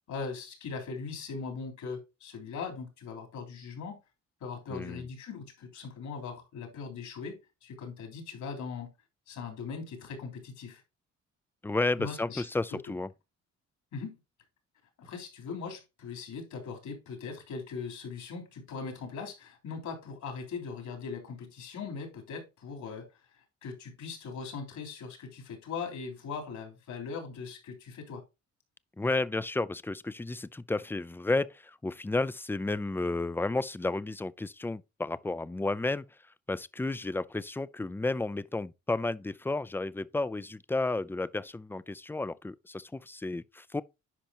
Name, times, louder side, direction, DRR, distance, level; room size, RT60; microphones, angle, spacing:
voice 1, 0.1-4.0 4.4-8.9 9.3-10.8 12.0-12.4 12.7-12.8 13.9-14.2 15.0-28.2, left 5 dB, 75° left, 3.5 m, -40 dB
voice 2, 4.7-5.0 11.6-13.1 29.0-36.0 36.5-43.8, left 2 dB, 5° left, 0.3 m, -32 dB
10.0 x 5.2 x 2.9 m
cardioid pair, 90°, 30 cm